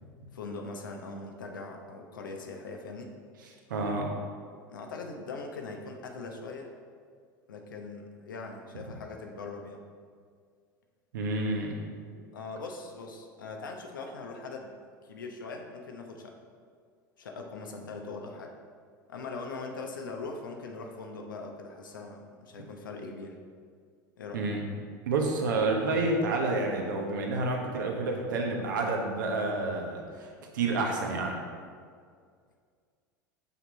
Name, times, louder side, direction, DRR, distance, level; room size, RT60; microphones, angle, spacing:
voice 1, 0.3-3.1 4.7-6.7 7.5-9.8 12.3-14.7 15.0-16.3 17.2-18.5 19.1-23.4 24.2-24.4, left 3 dB, 80° left, 3 dB, 0.9 m, -41 dB
voice 2, 3.7-4.1 11.1-11.8 24.3-24.7 25.1-30.3 30.5-31.4, right 3 dB, 75° right, 1 dB, 1.2 m, -29 dB
6.0 x 5.7 x 4.2 m, 2.1 s
hypercardioid pair, 80°, 11 cm